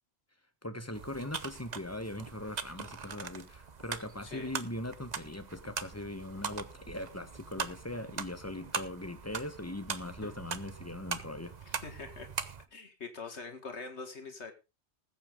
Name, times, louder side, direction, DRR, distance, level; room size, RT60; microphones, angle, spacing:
voice 1, 0.6-11.5, left 1 dB, 15° left, 1.2 m, -40 dB
sound 1, 0.9-12.6, right 5 dB, 40° right, 0.9 m, -41 dB
voice 2, 11.8-12.3 12.7-14.5, left 4 dB, 75° left, 2.1 m, -43 dB
20.0 x 8.1 x 3.6 m
omnidirectional pair, 1.1 m